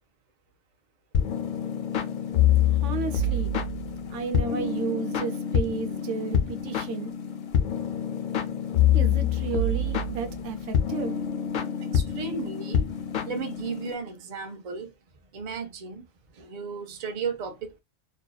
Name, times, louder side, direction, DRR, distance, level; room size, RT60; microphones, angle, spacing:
sound 1, 1.1-13.9, left 7 dB, 60° left, 0.5 m, -26 dB
voice 1, 2.6-3.6 4.1-7.1 8.9-11.2, right 6 dB, 85° right, 0.9 m, -33 dB
voice 2, 11.8-12.8 13.3-14.9 15.3-16.1 16.3-17.8, right 5 dB, 45° right, 0.6 m, -34 dB
2.5 x 2.2 x 2.2 m
omnidirectional pair, 1.2 m